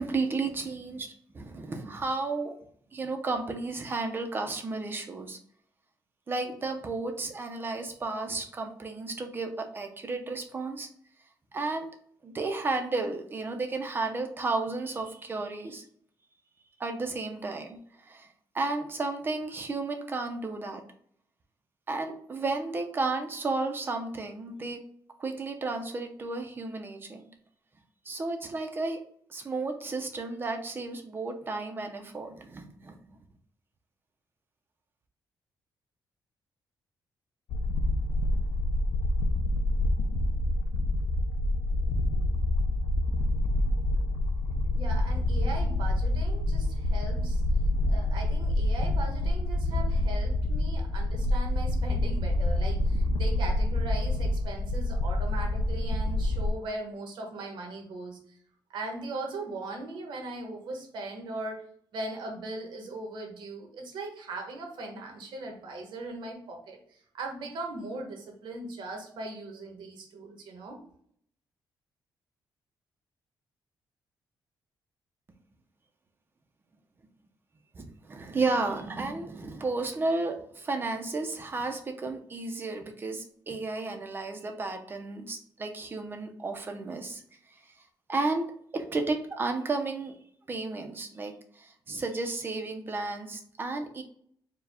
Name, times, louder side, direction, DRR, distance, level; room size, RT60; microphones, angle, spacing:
voice 1, 0.0-2.5 2.9-5.4 6.3-10.9 11.5-11.9 12.2-15.9 16.8-18.3 18.5-20.8 21.9-24.8 25.2-27.3 28.0-29.0 29.3-33.0 77.7-87.2 87.5-87.7 88.1-88.5 88.7-90.2 90.5-94.0, right 3 dB, 25° right, 4 dB, 0.6 m, -33 dB
sound 1, 37.5-56.5, left 1 dB, 85° left, 0.5 m, -27 dB
voice 2, 44.7-47.4 47.9-58.4 58.7-61.6 61.9-70.8, right 2 dB, 80° right, 2 dB, 1.2 m, -39 dB
4.7 x 2.3 x 3.5 m, 0.62 s
cardioid pair, 145°, 8 cm